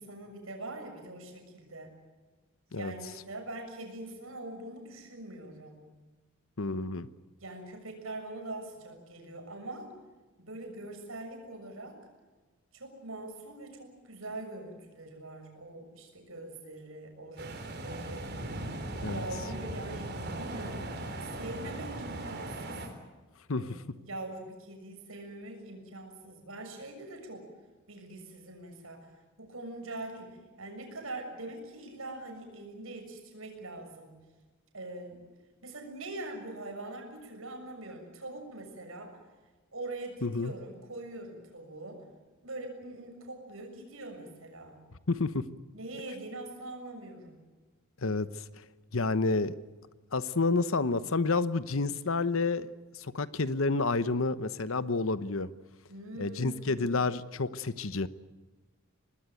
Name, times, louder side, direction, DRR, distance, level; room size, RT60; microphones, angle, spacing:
voice 1, 0.0-1.9 2.7-5.8 7.4-9.9 10.4-12.0 12.7-18.4 19.1-22.8 23.6-27.5 27.9-29.1 29.4-34.1 34.7-35.3 35.6-39.2 39.7-42.0 42.4-44.8 45.7-47.4 55.9-57.0, right 2 dB, 70° right, 3 dB, 6.8 m, -43 dB
voice 2, 6.6-7.1 19.0-19.2 23.5-23.8 40.2-40.5 45.1-45.4 48.0-48.3 48.9-49.5 50.1-55.5 56.2-58.1, left 3 dB, 70° left, 14 dB, 1.0 m, -29 dB
sound 1, 17.4-22.9, right 1 dB, 50° right, 3.7 m, -38 dB
25.0 x 20.0 x 9.2 m, 1.2 s
head